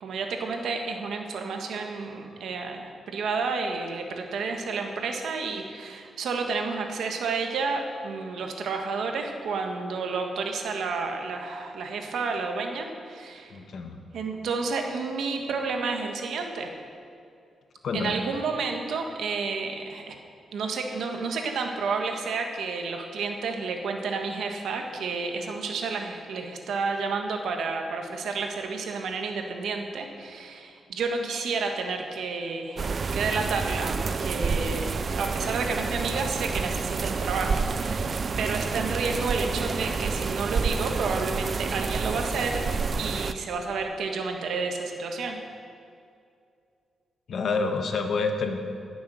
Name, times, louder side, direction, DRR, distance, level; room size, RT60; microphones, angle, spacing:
voice 1, 0.0-13.6 14.1-16.7 17.9-20.2 20.5-32.8 33.1-34.9 35.2-38.1 38.4-42.6 42.9-45.4, right 4 dB, 75° right, 4 dB, 1.4 m, -30 dB
voice 2, 13.5-14.0 17.8-18.2 47.3-48.6, left 4 dB, 65° left, 5 dB, 1.4 m, -28 dB
sound 1, 32.8-43.3, right 4 dB, 50° right, 0.5 m, -29 dB
16.5 x 7.1 x 6.3 m, 2.4 s
cardioid pair, 80°, 0 cm